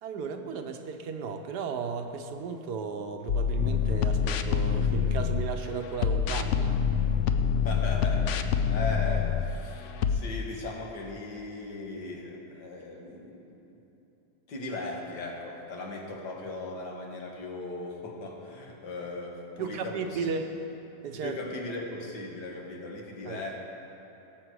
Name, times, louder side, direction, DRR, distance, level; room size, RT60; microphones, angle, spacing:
voice 1, 0.0-6.8 19.6-20.6 21.0-21.8 23.2-23.4, right 5 dB, 80° right, 6 dB, 1.4 m, -35 dB
sound 1, 3.3-5.6 6.0-9.6 10.0-10.2, left 7 dB, 70° left, 0.7 m, -26 dB
voice 2, 7.6-13.8 14.5-20.3 21.2-23.5, left 2 dB, 90° left, 0 dB, 2.1 m, -38 dB
17.5 x 7.2 x 4.8 m, 3.0 s
omnidirectional pair, 1.7 m